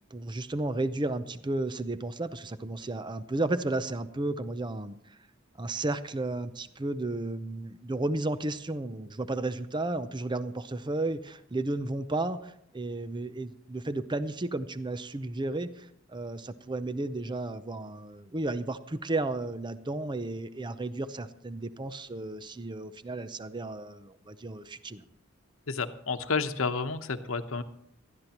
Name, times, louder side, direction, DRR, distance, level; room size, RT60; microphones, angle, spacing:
voice 1, 0.1-5.0 5.6-25.0, right 2 dB, 25° right, 12 dB, 0.6 m, -33 dB
voice 2, 25.7-27.6, left 4 dB, 80° left, 8 dB, 0.9 m, -30 dB
18.5 x 13.0 x 3.0 m, 0.73 s
head